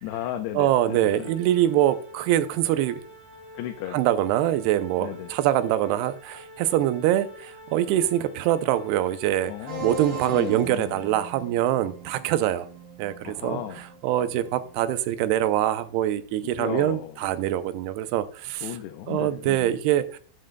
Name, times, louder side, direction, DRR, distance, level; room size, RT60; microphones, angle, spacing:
voice 1, 0.0-1.3 3.5-4.0 5.0-5.3 9.5-10.0 10.3-11.0 13.2-13.8 16.4-17.2 18.6-19.8, left 12 dB, 80° left, 6 dB, 2.7 m, -35 dB
voice 2, 0.6-3.0 3.9-9.5 9.8-12.7 13.0-18.8 19.1-20.2, right 12 dB, 80° right, 11 dB, 2.5 m, -24 dB
Organ, 0.8-11.7, equal, 15° left, 3.6 m, -47 dB
sound 1, 9.7-15.0, right 2 dB, 60° right, 4.4 m, -40 dB
13.0 x 7.6 x 2.2 m, 0.43 s
omnidirectional pair, 4.9 m